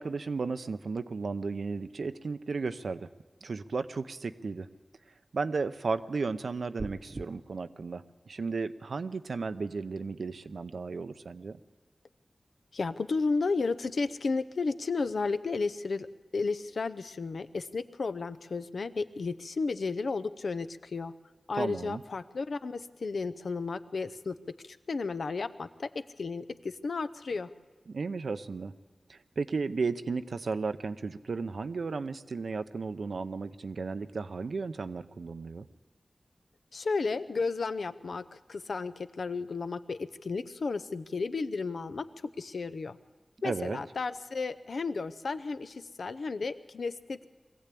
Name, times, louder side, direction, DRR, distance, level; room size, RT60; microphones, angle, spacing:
voice 1, 0.0-3.1 3.4-4.7 5.3-11.6 21.6-22.0 27.9-28.7 29.1-35.7 43.4-43.8, right 4 dB, 90° right, 11 dB, 0.6 m, -34 dB
sound 1, 6.8-7.3, right 2 dB, 50° right, 0.8 m, -39 dB
voice 2, 12.7-16.1 16.3-21.1 21.5-24.4 24.6-27.5 36.7-38.2 38.5-42.1 42.4-43.0 43.4-47.3, left 4 dB, 90° left, 11 dB, 0.6 m, -33 dB
22.5 x 15.5 x 8.4 m, 1.3 s
wide cardioid pair, 80°, 0 cm